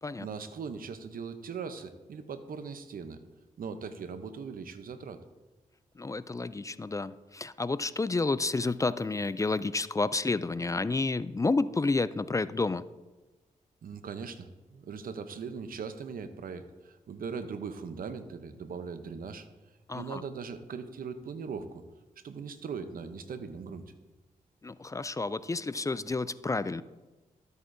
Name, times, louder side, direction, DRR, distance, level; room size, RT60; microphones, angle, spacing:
voice 1, 0.2-3.2 3.6-5.2 13.8-19.5 19.9-21.8 22.2-23.8, right 5 dB, 75° right, 10 dB, 0.7 m, -40 dB
voice 2, 6.0-12.9 19.9-20.2 24.6-26.8, left 3 dB, 20° left, 16 dB, 0.3 m, -30 dB
13.0 x 7.9 x 2.6 m, 1.2 s
cardioid pair, 60°, 15 cm